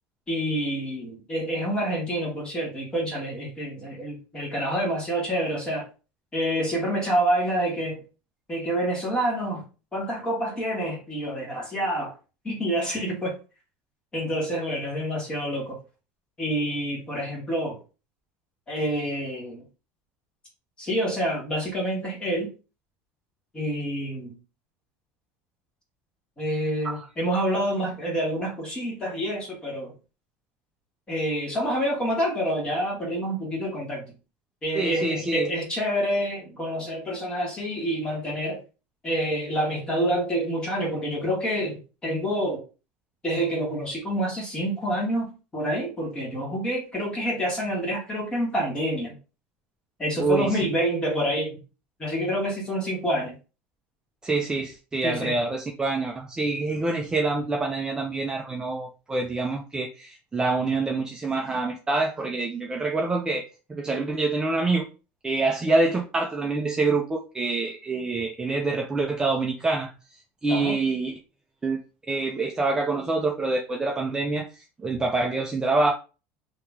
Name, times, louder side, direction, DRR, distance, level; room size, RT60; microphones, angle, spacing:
voice 1, 0.3-5.9 6.3-8.0 8.5-9.6 9.9-12.1 12.4-13.4 14.1-15.8 16.4-17.8 18.7-19.6 20.8-22.5 23.5-24.3 26.4-29.9 31.1-34.0 34.6-38.6 39.0-42.6 43.2-49.1 50.0-51.6 52.0-53.3 55.0-55.4 70.5-70.8, equal, 15° left, -3 dB, 1.6 m, -27 dB
voice 2, 34.7-35.5 50.2-50.5 54.2-63.4 63.7-64.9 65.2-69.9 70.4-71.1 71.6-71.8 72.1-75.9, right 3 dB, 10° right, 2 dB, 0.4 m, -26 dB
3.0 x 2.8 x 3.5 m, 0.33 s
cardioid pair, 150°, 6 cm